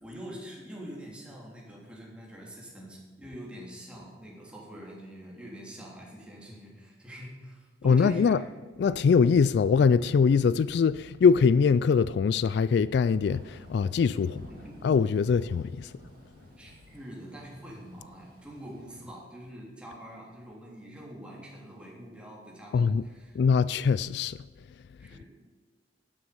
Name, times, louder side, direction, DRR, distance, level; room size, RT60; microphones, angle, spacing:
voice 1, 0.0-8.4 14.6-14.8 16.6-23.4 25.0-25.2, equal, 5° right, 3.4 m, -45 dB
voice 2, 7.8-8.4 8.8-14.5 14.8-15.9 22.7-23.0 23.4-24.4, left 5 dB, 65° left, 0.3 m, -23 dB
Thunder / Rain, 13.2-19.2, right 1 dB, 55° right, 2.9 m, -53 dB
12.5 x 10.0 x 5.4 m
head